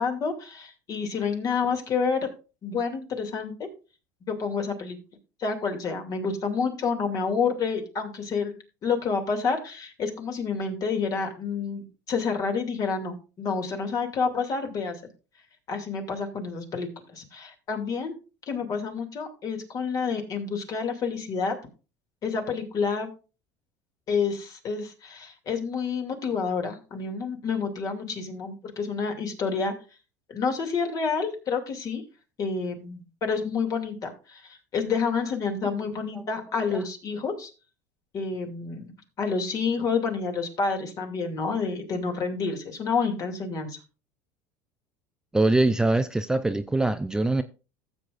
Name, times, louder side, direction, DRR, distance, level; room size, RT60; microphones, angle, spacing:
voice 1, 0.0-2.3 2.6-3.7 4.2-5.0 5.4-8.5 8.8-15.0 15.7-18.1 18.5-21.6 22.2-23.1 24.1-29.7 30.3-32.0 32.4-37.5 38.1-38.9 39.2-43.8, left 5 dB, 40° left, 2.5 m, -29 dB
voice 2, 45.3-47.4, right 2 dB, 5° right, 0.5 m, -23 dB
15.0 x 7.8 x 2.5 m
supercardioid pair, 110°, 9 cm